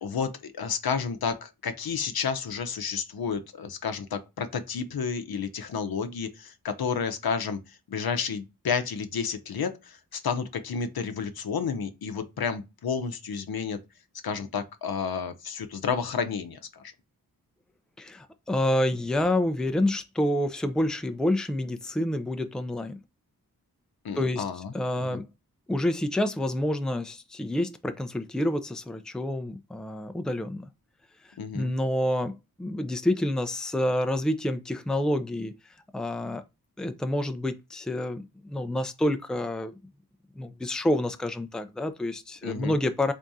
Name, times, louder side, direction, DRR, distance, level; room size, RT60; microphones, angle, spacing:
voice 1, 0.0-7.6 7.9-13.8 14.2-16.8 24.0-24.7 25.0-25.2 31.4-31.7 42.4-42.8, left 6 dB, 75° left, 0.7 m, -31 dB
voice 2, 18.0-23.0 24.2-24.4 24.7-25.3 25.7-30.7 31.5-35.5 35.9-36.4 36.8-39.7 40.4-43.1, left 1 dB, ahead, 0.5 m, -28 dB
3.6 x 3.5 x 2.7 m
cardioid pair, 50°, 37 cm